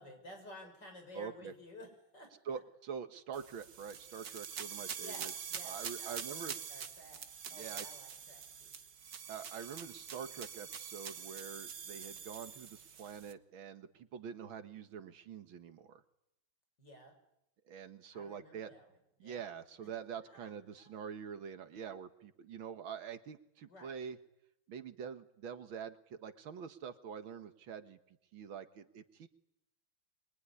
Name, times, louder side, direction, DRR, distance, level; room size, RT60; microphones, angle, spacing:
voice 1, 0.0-2.6 5.0-8.7 9.5-9.6 16.8-17.1 18.1-19.4 20.2-20.5 20.8-20.9 23.7-24.0, left 1 dB, 60° left, 3 dB, 7.3 m, -54 dB
voice 2, 1.1-1.5 2.5-5.3 5.6-6.5 7.5-7.9 9.3-16.0 17.7-18.7 19.2-24.2 24.7-28.0 28.3-29.3, right 7 dB, 80° right, 9 dB, 2.2 m, -45 dB
sound 1, 3.3-13.3, right 7 dB, 55° right, 1.6 m, -45 dB
24.0 x 23.0 x 9.8 m, 0.82 s
omnidirectional pair, 2.2 m